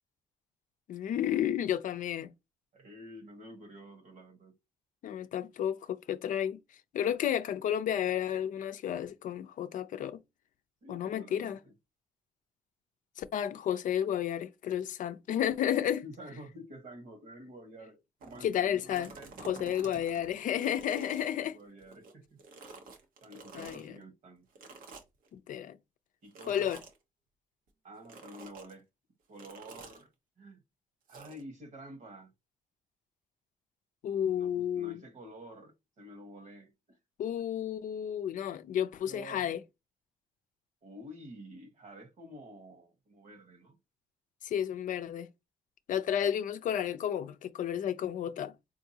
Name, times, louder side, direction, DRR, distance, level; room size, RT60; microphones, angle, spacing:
voice 1, 0.9-2.3 5.0-6.6 6.9-10.2 10.9-11.6 13.2-16.0 18.4-19.1 19.4-21.6 23.5-23.8 25.3-25.8 26.5-26.8 34.0-35.0 37.2-39.6 44.4-45.3 45.9-48.5, left 10 dB, 65° left, 0.4 m, -32 dB
voice 2, 2.7-4.6 10.8-11.7 16.0-19.3 19.6-20.3 21.1-22.4 23.2-24.5 26.2-26.7 27.8-28.9 29.3-30.1 30.4-30.6 31.1-32.3 34.3-37.0 39.0-39.6 40.8-43.8 46.2-46.5, equal, 60° right, 1.3 m, -50 dB
sound 1, 18.2-18.5 18.8-22.1 22.4-23.9 24.5-25.3 26.3-27.0 28.0-28.7 29.4-30.0 31.1-31.4, right 3 dB, 85° right, 0.9 m, -49 dB
3.7 x 2.6 x 2.7 m
cardioid pair, 80°, 14 cm